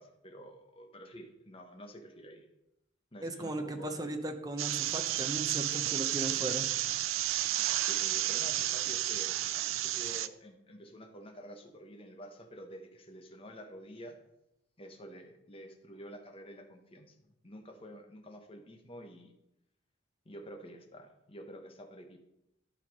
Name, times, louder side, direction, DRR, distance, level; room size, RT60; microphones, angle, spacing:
voice 1, 0.0-2.4 3.1-4.0 7.8-14.2 14.8-19.3 20.2-22.2, equal, 30° left, 4 dB, 1.2 m, -49 dB
voice 2, 3.2-6.6, right 2 dB, 20° right, 6 dB, 0.9 m, -37 dB
sound 1, 4.6-10.3, right 13 dB, 85° right, 0.5 m, -32 dB
11.5 x 5.7 x 5.3 m, 0.86 s
head